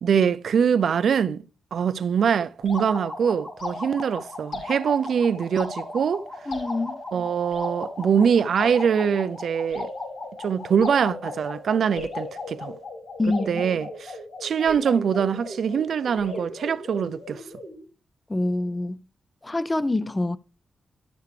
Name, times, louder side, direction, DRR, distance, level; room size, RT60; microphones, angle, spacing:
voice 1, 0.0-1.4 1.7-6.3 7.1-9.9 10.4-12.8 13.5-17.4, right 7 dB, 60° right, 0.4 m, -23 dB
sound 1, 2.6-17.8, left 2 dB, 70° left, 5.1 m, -36 dB
voice 2, 6.5-7.0 13.2-13.7 18.3-19.0 19.4-20.4, left 2 dB, 15° left, 0.4 m, -26 dB
12.5 x 6.7 x 3.2 m
wide cardioid pair, 160°, 0 cm